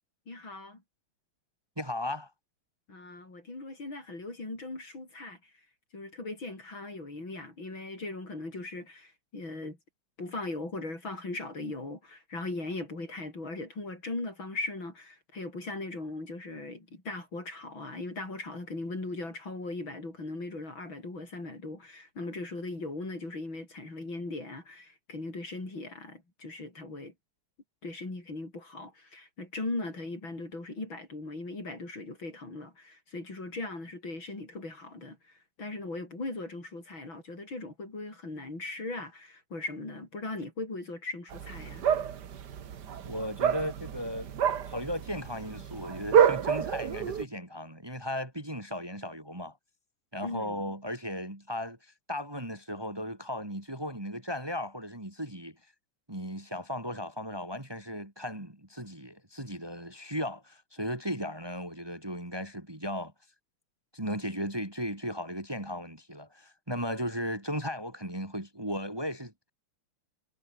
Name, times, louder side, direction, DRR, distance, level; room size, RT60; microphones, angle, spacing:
voice 1, 0.3-0.8 2.9-5.5 5.9-9.8 10.2-27.1 27.8-41.9 50.2-50.7, left 2 dB, 65° left, 8.0 m, -39 dB
voice 2, 1.8-2.3 43.0-44.3 44.6-49.6 50.1-55.5 56.1-63.1 63.9-69.5, equal, 10° right, 3.0 m, -36 dB
sound 1, 41.3-47.3, right 8 dB, 55° right, 1.8 m, -28 dB
omnidirectional pair, 2.3 m